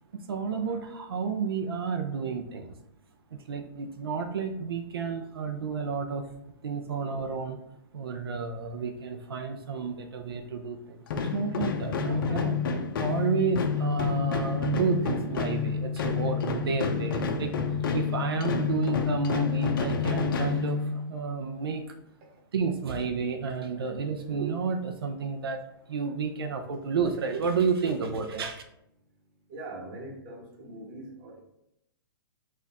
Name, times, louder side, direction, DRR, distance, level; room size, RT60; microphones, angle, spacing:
voice 1, 0.1-2.7 3.3-6.3 6.6-7.6 7.9-12.6 13.0-17.5 17.8-21.9 22.5-25.6 25.9-28.6, right 5 dB, 85° right, 5 dB, 0.5 m, -31 dB
sound 1, 11.1-21.2, left 6 dB, 65° left, 0.6 m, -29 dB
voice 2, 29.5-31.4, right 2 dB, 35° right, 1 dB, 1.0 m, -42 dB
4.2 x 2.4 x 4.0 m, 0.81 s
hypercardioid pair, 140°, 12 cm